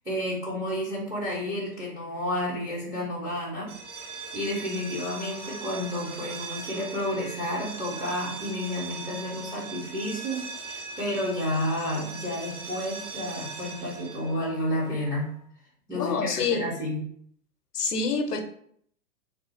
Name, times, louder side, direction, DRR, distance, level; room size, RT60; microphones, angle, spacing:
voice 1, 0.0-3.7 4.0-15.3 15.9-17.0, left 1 dB, 5° right, 0.6 m, -31 dB
sound 1, 3.6-15.3, right 4 dB, 50° right, 1.0 m, -40 dB
voice 2, 15.9-16.7 17.7-18.4, left 4 dB, 75° left, 0.7 m, -27 dB
3.3 x 2.4 x 4.0 m
figure-of-eight pair, 110°, 46 cm